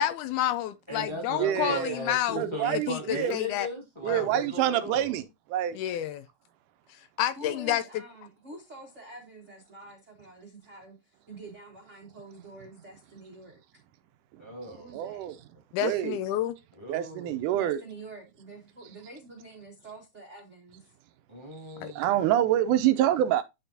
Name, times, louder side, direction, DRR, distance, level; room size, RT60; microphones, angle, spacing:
voice 1, 0.0-3.7 4.1-4.3 5.7-6.2 7.2-7.8 15.7-16.6 21.8-21.9, left 11 dB, 80° left, 1.9 m, -29 dB
voice 2, 0.9-5.2 14.4-15.3 16.7-17.6 21.3-22.3, left 1 dB, 15° left, 1.2 m, -38 dB
voice 3, 1.4-2.0 2.4-3.4 4.0-5.8 14.9-15.4 15.8-16.2 16.9-17.8 21.9-23.4, right 12 dB, 80° right, 2.1 m, -26 dB
voice 4, 7.4-13.6 14.8-15.3 17.5-20.9, right 2 dB, 60° right, 0.7 m, -47 dB
11.0 x 3.7 x 2.7 m
omnidirectional pair, 3.7 m